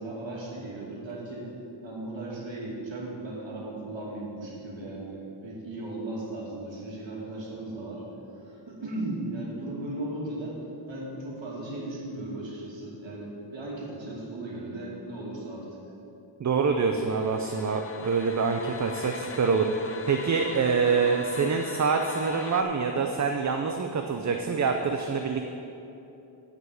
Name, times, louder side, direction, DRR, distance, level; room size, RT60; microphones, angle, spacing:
voice 1, 0.0-1.5 1.8-8.0 8.4-10.6 10.9-15.7, right 2 dB, 70° right, -4 dB, 2.5 m, -36 dB
voice 2, 16.4-25.5, right 5 dB, 40° right, 5 dB, 0.5 m, -26 dB
sound 1, 17.0-22.6, left 5 dB, 30° left, 0.5 m, -42 dB
9.6 x 5.1 x 7.9 m, 2.9 s
wide cardioid pair, 120°, 46 cm